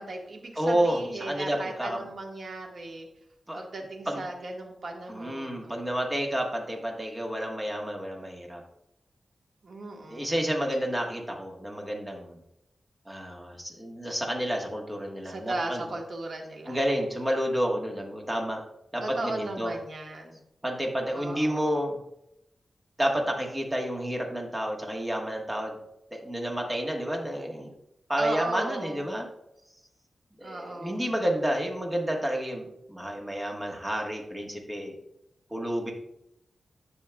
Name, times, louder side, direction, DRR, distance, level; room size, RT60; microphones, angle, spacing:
voice 1, 0.0-3.1 3.5-6.0 9.6-10.3 15.2-16.8 19.0-20.4 21.1-21.8 28.2-29.1 30.4-31.1, right 2 dB, 60° right, 1 dB, 1.3 m, -36 dB
voice 2, 0.6-2.0 3.5-3.6 4.1-4.2 5.1-8.6 10.1-12.4 13.1-15.9 16.6-18.6 18.9-19.7 20.6-22.0 23.0-25.8 26.1-27.7 28.1-29.3 30.4-34.9 35.5-35.9, equal, 15° right, 0 dB, 1.3 m, -30 dB
10.5 x 6.5 x 2.3 m, 0.83 s
wide cardioid pair, 170°, 0 cm